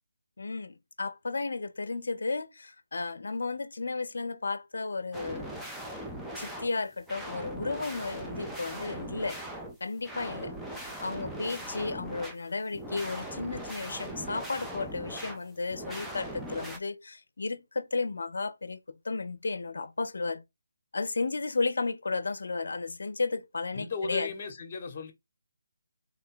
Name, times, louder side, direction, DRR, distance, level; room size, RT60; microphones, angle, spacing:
voice 1, 0.4-5.5 6.4-9.4 9.8-10.6 11.0-20.4 20.9-24.3, left 3 dB, 70° left, 0.5 m, -33 dB
sound 1, 5.1-16.8, right 1 dB, 5° right, 0.5 m, -40 dB
voice 2, 23.7-25.1, left 4 dB, 35° left, 0.9 m, -36 dB
3.5 x 2.2 x 3.8 m
figure-of-eight pair, 155°, 0 cm